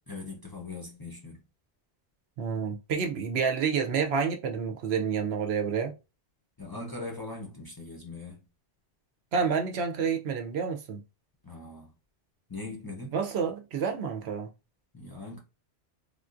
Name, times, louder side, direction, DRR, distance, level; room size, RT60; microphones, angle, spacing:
voice 1, 0.1-1.4 6.6-8.4 11.4-11.9 12.5-13.2 14.9-15.4, left 2 dB, 25° left, 0.6 m, -40 dB
voice 2, 2.4-5.9 9.3-11.0 13.1-14.5, right 6 dB, 70° right, 0.8 m, -29 dB
3.5 x 2.4 x 2.5 m
omnidirectional pair, 1.1 m